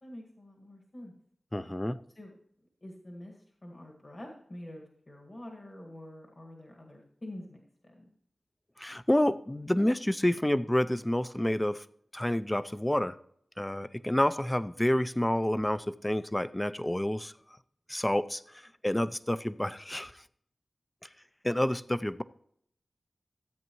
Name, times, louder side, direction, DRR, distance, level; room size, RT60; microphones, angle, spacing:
voice 1, 0.0-1.1 2.2-2.3 2.8-8.0, left 1 dB, 40° left, 1.8 m, -47 dB
voice 2, 1.5-2.0 8.8-11.8 12.1-13.2 13.6-17.3 17.9-18.4 18.8-20.1 21.4-22.2, left 1 dB, 15° left, 0.4 m, -28 dB
14.0 x 8.2 x 3.0 m
wide cardioid pair, 65°, 0 cm